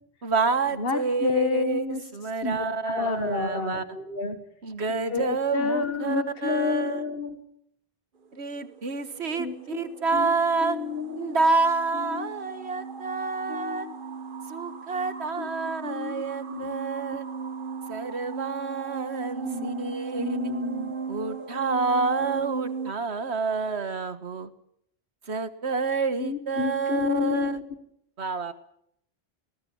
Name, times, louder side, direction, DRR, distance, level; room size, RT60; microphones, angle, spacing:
voice 1, 0.2-1.9 2.1-3.8 4.6-7.0 8.3-10.8 11.2-13.9 14.5-17.2 17.9-20.5 21.1-24.5 25.3-27.6 28.2-28.5, right 4 dB, 80° right, 12 dB, 1.8 m, -28 dB
voice 2, 0.8-2.0 2.4-4.4 4.9-7.4 9.4-9.8 10.1-10.3 10.6-11.3 12.0-12.3 13.5-13.9 15.4-15.5 15.8-16.2 16.5-16.8 19.4-20.9 26.2-27.6, left 4 dB, 60° left, 7 dB, 1.9 m, -30 dB
sound 1, 8.3-22.9, right 5 dB, 55° right, 1.3 m, -37 dB
20.5 x 18.0 x 8.6 m, 0.71 s
omnidirectional pair, 1.1 m